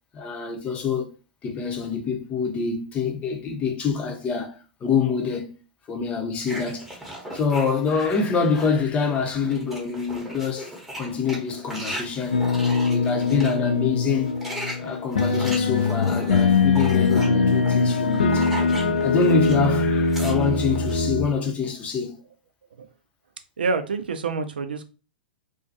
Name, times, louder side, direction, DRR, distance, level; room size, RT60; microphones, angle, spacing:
voice 1, 0.1-1.1 1.4-5.5 5.9-6.9 7.3-10.7 11.0-12.5 12.7-14.3 14.8-18.5 19.0-22.1, left 5 dB, 25° left, 0.6 m, -26 dB
sound 1, 6.5-8.8 9.2-13.6 14.1-19.7 19.9-21.0, right 1 dB, 5° right, 0.8 m, -37 dB
sound 2, 12.3-21.2, left 4 dB, 80° left, 0.4 m, -22 dB
voice 2, 23.6-24.9, right 4 dB, 85° right, 0.4 m, -27 dB
2.5 x 2.3 x 2.6 m
hypercardioid pair, 110°, 5 cm